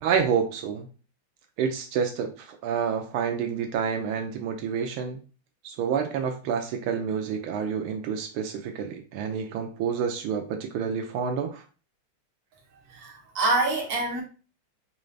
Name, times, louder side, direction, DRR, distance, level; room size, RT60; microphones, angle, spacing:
voice 1, 0.0-0.9 1.6-5.2 5.6-11.6, right 7 dB, 80° right, 1.4 m, -28 dB
voice 2, 12.9-14.2, right 2 dB, 45° right, 1.3 m, -26 dB
3.9 x 2.6 x 3.2 m
omnidirectional pair, 2.3 m